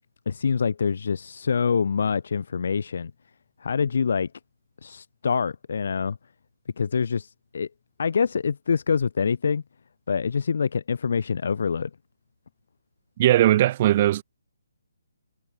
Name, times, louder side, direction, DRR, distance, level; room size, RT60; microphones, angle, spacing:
voice 1, 0.3-3.1 3.6-4.3 4.8-6.2 6.8-7.7 8.0-9.6 10.1-11.9, left 6 dB, 60° left, 1.2 m, -25 dB
voice 2, 13.2-14.2, right 13 dB, 30° right, 1.1 m, -19 dB
hypercardioid pair, 160°, 0 cm